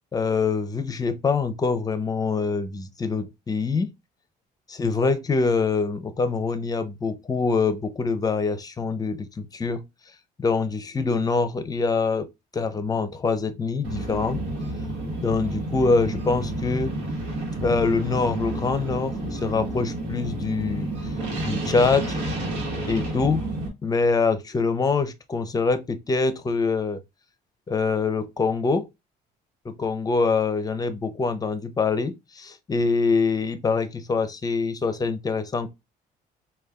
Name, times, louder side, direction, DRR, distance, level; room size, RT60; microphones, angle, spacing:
voice 1, 0.1-3.9 4.7-9.8 10.4-12.3 12.5-14.4 15.2-16.9 17.6-20.9 21.4-22.2 22.9-23.5 23.8-27.0 27.7-28.8 29.6-35.7, left 4 dB, 20° left, 0.5 m, -24 dB
sound 1, 13.8-23.7, right 1 dB, 90° right, 1.2 m, -30 dB
4.9 x 2.3 x 2.2 m
cardioid pair, 110°, 17 cm